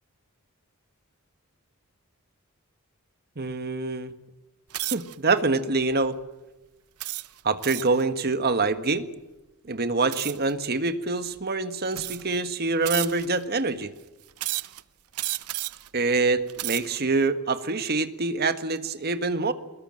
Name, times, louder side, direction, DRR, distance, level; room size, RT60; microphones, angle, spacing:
voice 1, 3.4-4.1 4.9-6.2 7.4-9.1 9.7-13.9 15.9-19.5, right 3 dB, 45° right, 11 dB, 1.6 m, -25 dB
sound 1, 4.7-5.2 5.8-6.1 7.0-8.0 10.1-10.5 11.3-11.4 11.9-12.4 12.8-13.4 14.4-14.8 15.1-15.9 16.4-17.0, right 17 dB, 85° right, 0.8 m, -32 dB
23.5 x 21.5 x 7.8 m, 1.1 s
head